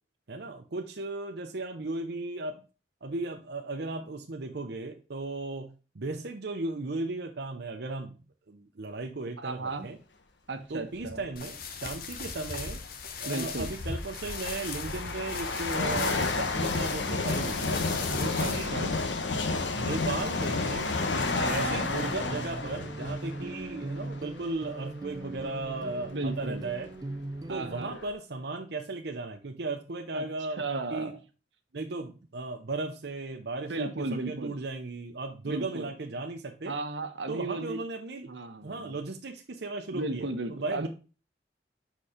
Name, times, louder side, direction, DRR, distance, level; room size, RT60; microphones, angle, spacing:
voice 1, 0.3-2.6 3.0-8.2 8.5-10.0 10.7-12.8 13.2-18.7 19.4-20.9 21.5-26.9 27.5-31.1 31.7-36.7 37.3-38.3 38.6-40.9, right 3 dB, 65° right, 3 dB, 0.7 m, -36 dB
voice 2, 9.4-9.9 10.5-11.2 13.2-13.7 18.1-19.0 21.3-21.9 26.1-26.6 27.5-28.0 30.1-30.2 30.6-31.2 33.7-34.6 35.4-35.9 36.7-37.8 38.3-39.0 39.9-40.9, right 2 dB, 90° right, 7 dB, 1.0 m, -35 dB
sound 1, 11.0-11.3 12.4-12.5 13.3-24.7 25.3-25.4 26.2-26.3 26.5-28.1, left 3 dB, 90° left, 1.0 m, -31 dB
sound 2, 11.4-18.7, left 4 dB, 55° left, 0.8 m, -38 dB
sound 3, 21.4-27.8, right 2 dB, 20° right, 0.4 m, -39 dB
6.2 x 4.4 x 4.9 m, 0.34 s
head